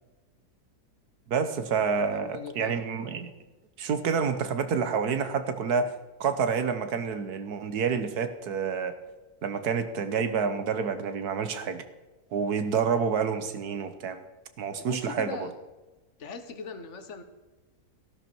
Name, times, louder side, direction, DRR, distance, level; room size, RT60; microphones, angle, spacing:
voice 1, 1.3-3.3 3.8-5.9 6.2-8.9 9.4-11.8 12.3-14.2 14.6-15.5, right 6 dB, 70° right, 10 dB, 1.6 m, -28 dB
voice 2, 2.1-2.7 14.8-15.5 16.2-17.2, left 5 dB, 50° left, 9 dB, 1.4 m, -40 dB
14.5 x 12.0 x 4.5 m, 1.2 s
omnidirectional pair, 1.7 m